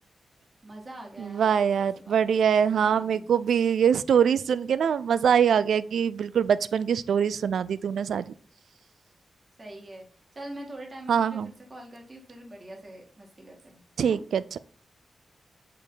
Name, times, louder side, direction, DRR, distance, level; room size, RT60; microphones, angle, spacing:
voice 1, 0.6-2.2 2.9-3.3 9.6-10.0 10.4-14.2, right 1 dB, 35° right, 0 dB, 2.1 m, -44 dB
voice 2, 1.2-8.3 11.1-11.5 14.0-14.6, right 7 dB, 90° right, 16 dB, 0.4 m, -23 dB
6.6 x 5.2 x 3.9 m, 0.43 s
cardioid pair, 90°, 0 cm